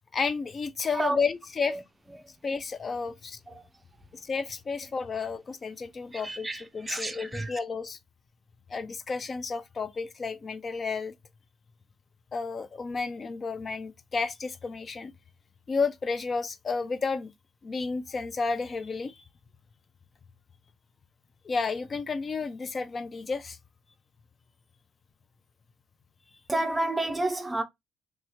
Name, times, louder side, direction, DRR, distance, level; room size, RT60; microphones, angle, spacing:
voice 1, 0.1-1.8 2.4-3.4 4.2-6.5 6.7-8.0 8.7-11.1 12.3-15.1 15.7-17.3 17.6-19.2 21.4-23.6, left 4 dB, 40° left, 0.4 m, -31 dB
voice 2, 6.1-7.6 26.5-27.6, right 1 dB, 15° right, 0.6 m, -31 dB
2.7 x 2.3 x 2.9 m
cardioid pair, 80°, 0 cm